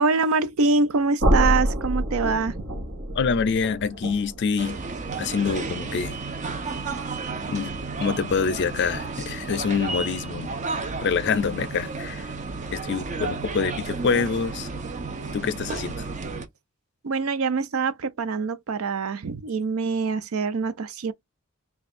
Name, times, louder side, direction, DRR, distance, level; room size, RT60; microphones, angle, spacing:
voice 1, 0.0-2.6 17.0-21.1, right 4 dB, 80° right, 0.5 m, -24 dB
sound 1, 1.2-7.1, equal, 65° right, 1.2 m, -28 dB
voice 2, 3.1-4.8 5.2-6.2 7.5-7.7 8.0-10.5 10.8-12.3 12.7-14.7 15.3-16.0, left 5 dB, 55° left, 0.4 m, -26 dB
sound 2, 4.6-16.5, right 4 dB, 35° right, 0.6 m, -32 dB
3.3 x 2.3 x 4.1 m
head